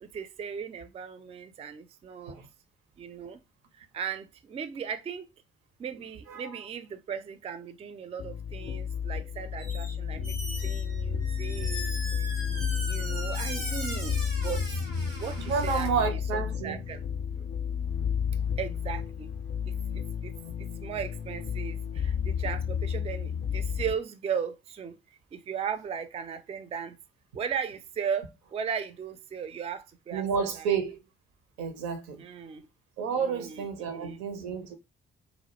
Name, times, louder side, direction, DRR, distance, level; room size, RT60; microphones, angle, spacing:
voice 1, 0.0-2.4 3.0-3.4 3.7-5.3 5.8-11.9 12.2-12.5 12.8-14.2 14.4-14.8 15.2-17.0 18.6-19.3 19.7-25.0 25.3-27.0 27.3-30.7 32.2-32.7 33.2-34.2, right 7 dB, 20° right, 0.3 m, -37 dB
sound 1, 8.2-23.9, left 7 dB, 40° left, 0.5 m, -32 dB
Squeak, 9.6-9.9 10.2-15.9, right 1 dB, 85° right, 1.0 m, -39 dB
voice 2, 15.4-16.8 30.1-31.0 31.6-32.2 33.0-34.8, right 6 dB, 65° right, 0.6 m, -30 dB
2.2 x 2.1 x 2.9 m
figure-of-eight pair, 45°, 30 cm